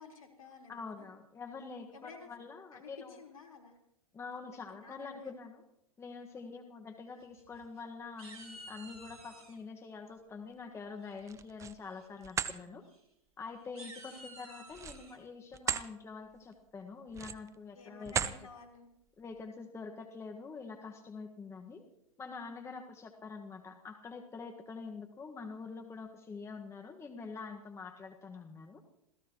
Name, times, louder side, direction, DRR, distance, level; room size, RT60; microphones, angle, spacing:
voice 1, 0.0-1.1 1.9-2.4 2.7-3.8 4.5-5.3 14.1-14.2 17.7-18.9, left 4 dB, 70° left, 2 dB, 4.2 m, -53 dB
voice 2, 0.7-3.2 4.1-5.6 6.0-12.8 13.4-18.3 19.2-21.8 22.2-28.8, left 4 dB, 15° left, 4 dB, 1.6 m, -46 dB
sound 1, 7.2-7.8 8.2-9.6 11.0-11.4 11.8-12.1 12.3-12.5 12.8-13.0 13.6-15.2, right 1 dB, 75° right, 3.6 m, -52 dB
sound 2, 11.2-11.8 12.2-12.6 14.7-15.9 16.3-16.5 17.1-17.6 18.0-18.4, right 7 dB, 15° right, 0.7 m, -36 dB
27.0 x 17.0 x 3.0 m, 0.73 s
figure-of-eight pair, 105°, 18 cm